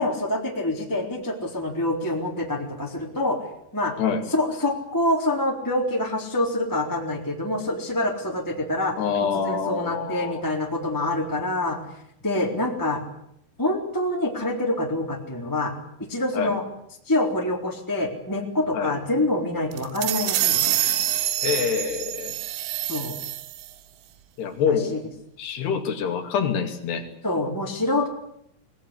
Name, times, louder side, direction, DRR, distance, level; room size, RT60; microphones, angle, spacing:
voice 1, 0.0-3.4 3.7-3.9 4.3-9.0 9.3-11.8 12.2-13.0 13.6-15.7 16.1-16.6 17.1-20.7 22.9-23.2 24.7-25.0 27.2-28.1, left 1 dB, 5° left, 0 dB, 2.8 m, -26 dB
voice 2, 9.0-10.4 16.3-16.6 18.7-18.9 21.4-22.3 24.4-25.0 25.4-27.1, left 6 dB, 60° left, 7 dB, 4.3 m, -26 dB
sound 1, 19.7-23.7, right 12 dB, 75° right, 3.5 m, -26 dB
22.0 x 19.5 x 9.9 m, 0.73 s
omnidirectional pair, 5.7 m